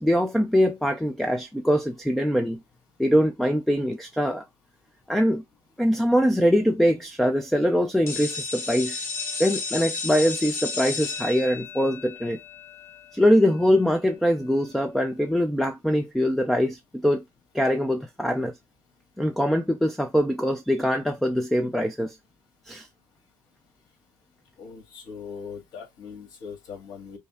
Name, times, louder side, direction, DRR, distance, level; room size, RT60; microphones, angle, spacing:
voice 1, 0.0-2.6 3.0-4.4 5.1-5.4 5.8-9.1 9.4-12.4 13.1-17.2 17.5-18.5 19.2-22.2 22.7-22.9, equal, ahead, 0.5 m, -23 dB
sound 1, 8.1-13.7, left 4 dB, 35° left, 1.5 m, -33 dB
voice 2, 24.6-27.2, left 6 dB, 60° left, 1.8 m, -40 dB
5.3 x 2.1 x 3.6 m
cardioid pair, 120°, 8 cm